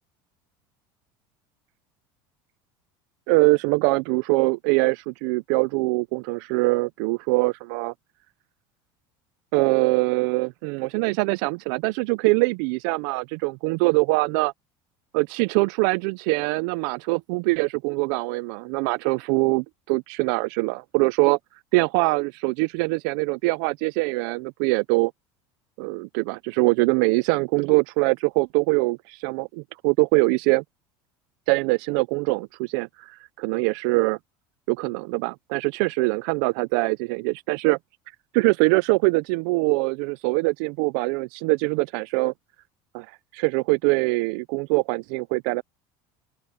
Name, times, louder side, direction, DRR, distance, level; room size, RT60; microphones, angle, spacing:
voice 1, 3.3-7.9 9.5-14.5 15.1-21.4 21.7-25.1 25.8-30.6 31.5-34.2 34.7-37.8 38.3-42.3 42.9-43.1 43.3-45.6, right 27 dB, 70° right, 0.4 m, -23 dB
open air
cardioid pair, 160°, 11 cm